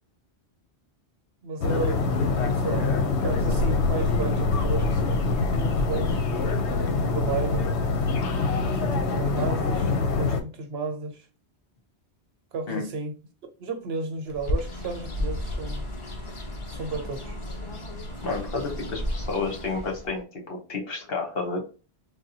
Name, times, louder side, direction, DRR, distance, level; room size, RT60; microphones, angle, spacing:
voice 1, 1.4-2.9 3.2-6.4 7.0-7.7 8.7-11.3 12.5-13.1 13.6-15.8 16.7-17.4, right 4 dB, 70° right, 0.9 m, -33 dB
sound 1, 1.6-10.4, left 3 dB, 85° left, 0.9 m, -24 dB
Bird, 14.3-20.2, left 1 dB, 35° left, 0.6 m, -33 dB
voice 2, 18.2-21.6, left 3 dB, 60° left, 1.2 m, -31 dB
3.6 x 2.2 x 2.6 m
omnidirectional pair, 1.1 m